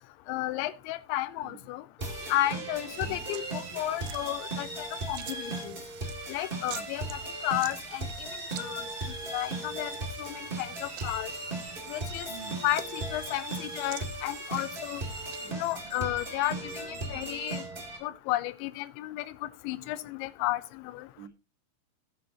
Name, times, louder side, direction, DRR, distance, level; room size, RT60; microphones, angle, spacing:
voice 1, 0.3-1.8 2.3-5.8 6.3-7.0 7.4-8.1 8.6-8.8 9.3-9.9 10.2-11.3 11.9-12.3 12.6-15.0 15.5-17.6 18.0-20.6 20.9-21.1, left 15 dB, 85° left, 14 dB, 3.0 m, -32 dB
voice 2, 1.4-1.7 2.9-3.3 6.7-7.0 12.3-12.7 15.1-17.5 18.0-18.2 19.9-20.1 21.2-21.3, right 5 dB, 65° right, 3 dB, 3.0 m, -51 dB
sound 1, 2.0-18.0, right 2 dB, 40° right, 0.7 m, -37 dB
sound 2, 2.9-15.5, right 16 dB, 85° right, 3.0 m, -48 dB
sound 3, 10.6-17.7, right 2 dB, 20° right, 1.4 m, -51 dB
15.5 x 7.8 x 2.9 m, 0.28 s
omnidirectional pair, 5.4 m